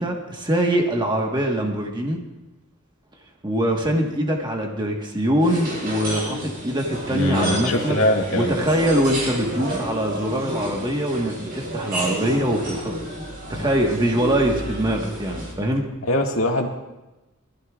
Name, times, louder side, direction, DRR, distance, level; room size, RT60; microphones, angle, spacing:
voice 1, 0.0-2.2 3.4-8.0 8.3-13.0 13.5-15.8, right 1 dB, 20° right, 1 dB, 1.3 m, -23 dB
sound 1, 5.4-15.5, right 1 dB, 50° right, 3.9 m, -30 dB
voice 2, 7.1-8.6 16.1-16.7, left 1 dB, 75° left, 0 dB, 1.9 m, -22 dB
23.5 x 14.5 x 2.4 m, 1.0 s
head